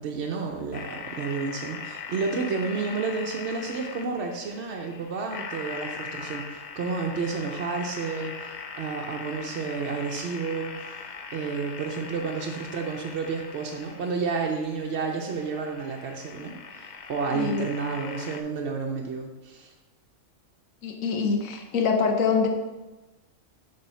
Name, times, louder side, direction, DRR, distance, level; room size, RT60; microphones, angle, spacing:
voice 1, 0.0-19.7, right 4 dB, 65° right, 1 dB, 0.9 m, -31 dB
sound 1, 0.7-18.4, left 5 dB, 60° left, 0.4 m, -41 dB
voice 2, 17.3-17.7 20.8-22.5, left 5 dB, 85° left, 4 dB, 1.3 m, -24 dB
7.0 x 3.4 x 5.5 m, 1.1 s
omnidirectional pair, 1.4 m